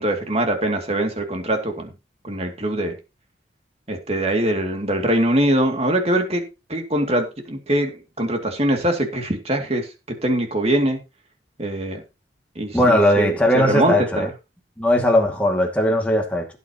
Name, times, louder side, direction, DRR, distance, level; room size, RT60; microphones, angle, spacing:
voice 1, 0.0-1.9 2.2-2.9 3.9-6.4 6.7-9.9 10.2-11.0 11.6-12.0 12.6-13.4 13.6-14.3, right 1 dB, 35° right, 2.5 m, -22 dB
voice 2, 12.7-14.3 14.8-16.5, left 1 dB, 5° left, 2.3 m, -18 dB
17.0 x 8.2 x 3.0 m
head